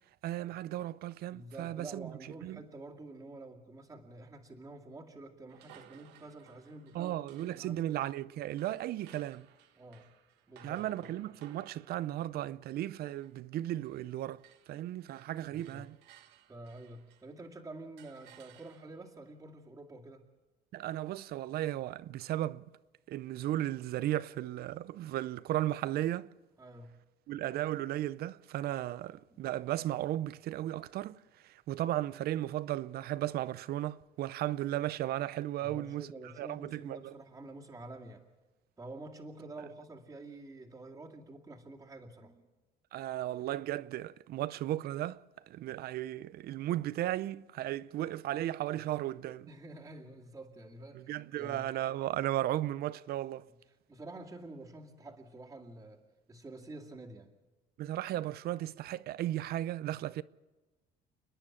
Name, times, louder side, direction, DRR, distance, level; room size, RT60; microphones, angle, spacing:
voice 1, 0.2-2.1 2.4-2.6 6.9-9.5 10.6-14.4 14.7-16.0 20.7-22.6 23.1-26.3 27.3-36.1 36.4-37.1 42.9-49.5 50.9-53.5 57.8-60.2, right 13 dB, 65° right, 0.6 m, -35 dB
voice 2, 1.3-7.2 7.5-8.0 9.8-10.1 10.5-11.1 15.5-15.9 16.5-20.3 26.6-26.9 29.3-29.4 35.6-38.3 38.8-42.5 49.5-51.7 53.9-56.0 56.3-57.3, right 2 dB, 20° right, 2.3 m, -48 dB
sound 1, 5.5-14.1 14.4-17.4 18.0-19.2, right 11 dB, 85° right, 1.3 m, -61 dB
29.5 x 10.0 x 8.6 m
cardioid pair, 110°, 17 cm